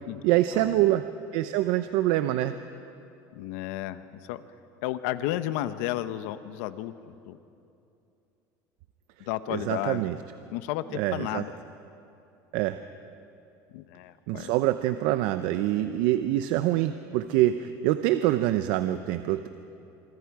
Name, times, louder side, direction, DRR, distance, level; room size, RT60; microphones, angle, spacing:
voice 1, 0.2-1.1 1.3-2.5 9.5-10.2 10.9-11.4 12.5-12.8 14.3-19.5, right 14 dB, 75° right, 10 dB, 0.7 m, -25 dB
voice 2, 3.3-4.4 4.8-7.4 9.3-10.1 10.5-11.5 13.7-14.5, left 14 dB, 85° left, 12 dB, 0.9 m, -33 dB
25.5 x 24.5 x 4.8 m, 2.7 s
supercardioid pair, 120°, 8 cm